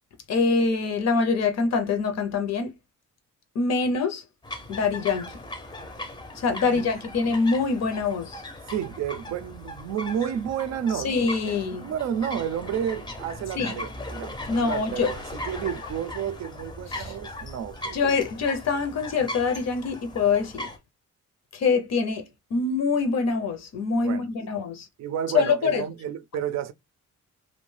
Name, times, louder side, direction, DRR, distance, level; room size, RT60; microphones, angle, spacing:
voice 1, 0.3-2.7 3.5-4.2 4.7-5.3 6.3-8.4 10.9-11.9 13.6-13.8 14.5-15.1 16.9-17.1 17.9-20.7 21.5-22.3 22.5-24.9 25.3-25.8, left 4 dB, 60° left, 0.6 m, -24 dB
sound 1, 4.4-20.8, left 1 dB, 15° left, 0.5 m, -39 dB
voice 2, 8.7-11.1 11.7-18.0 23.9-24.2 25.0-26.7, right 9 dB, 65° right, 0.4 m, -31 dB
2.5 x 2.1 x 3.2 m
cardioid pair, 105°, 29 cm